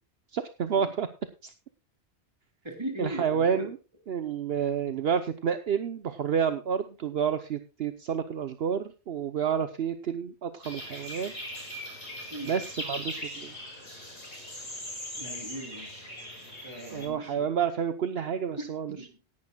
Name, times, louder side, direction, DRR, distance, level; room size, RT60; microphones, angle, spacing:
voice 1, 0.3-1.1 1.4-1.5 3.0-3.7 4.1-11.3 12.5-13.5 16.9-19.0, right 7 dB, 65° right, 10 dB, 1.1 m, -29 dB
voice 2, 2.6-3.7 12.3-12.5 15.2-15.9 16.6-17.5 18.6-19.2, equal, 25° right, 3 dB, 3.3 m, -39 dB
sound 1, 10.6-17.1, left 1 dB, 75° left, 5.6 m, -40 dB
18.5 x 10.5 x 2.3 m, 0.30 s
omnidirectional pair, 1.1 m